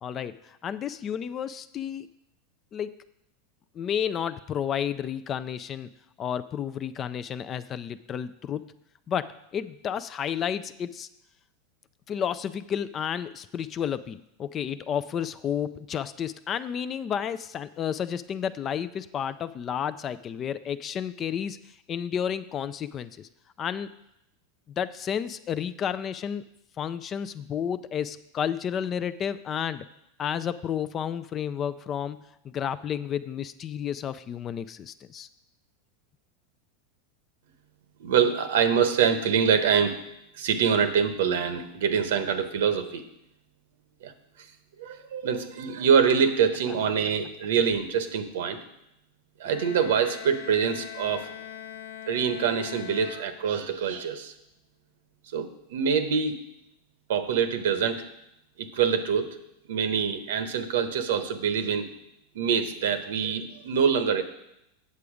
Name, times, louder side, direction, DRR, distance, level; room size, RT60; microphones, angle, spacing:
voice 1, 0.0-2.1 2.7-2.9 3.8-5.9 6.2-8.7 9.1-11.1 12.1-21.6 21.9-23.3 23.6-23.9 24.8-26.4 26.8-29.9 30.2-35.3, left 8 dB, 30° left, 14 dB, 0.3 m, -31 dB
voice 2, 38.0-40.0 40.3-43.0 44.0-44.1 44.8-48.6 49.4-51.3 52.1-54.3 55.3-56.4 57.1-58.0 58.6-59.3 59.7-61.9 62.3-64.2, right 7 dB, 80° right, 10 dB, 1.0 m, -25 dB
Bowed string instrument, 49.4-53.9, left 10 dB, 85° left, 0.5 m, -42 dB
8.4 x 6.8 x 5.0 m, 0.82 s
supercardioid pair, 140°, 0 cm